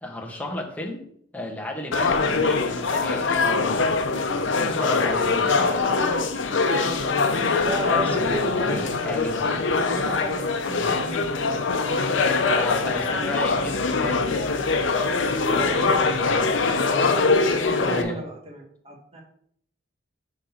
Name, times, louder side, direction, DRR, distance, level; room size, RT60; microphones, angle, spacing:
voice 1, 0.0-1.0 1.3-3.8 4.6-5.7 7.9-9.5 12.5-14.6 17.9-18.2, left 1 dB, 10° left, 0 dB, 1.0 m, -33 dB
sound 1, 1.9-18.0, left 4 dB, 85° left, 0.7 m, -23 dB
voice 2, 4.7-6.0 6.8-7.0 7.4-9.1 9.4-11.5 12.1-12.2 15.1-16.6 17.5-19.2, right 2 dB, 35° right, 1 dB, 1.3 m, -35 dB
6.4 x 3.9 x 5.7 m, 0.67 s
head